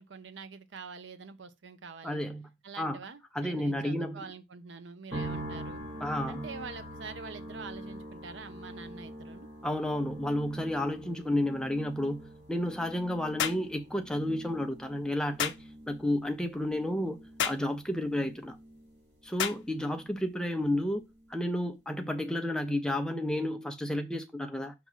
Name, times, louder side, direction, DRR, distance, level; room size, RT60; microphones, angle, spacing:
voice 1, 0.0-2.2 2.6-5.8 6.3-9.5, right 4 dB, 85° right, 0.7 m, -45 dB
voice 2, 2.0-2.5 2.8-3.0 3.3-4.2 6.0-6.5 9.6-18.6 19.2-21.0 21.3-24.7, left 1 dB, 5° left, 0.6 m, -31 dB
sound 1, 5.1-20.4 20.6-21.5, right 1 dB, 60° right, 3.2 m, -45 dB
sound 2, 13.4-13.7 15.4-15.6 17.4-17.7 19.4-19.6, left 8 dB, 85° left, 0.6 m, -30 dB
6.0 x 2.9 x 5.5 m
head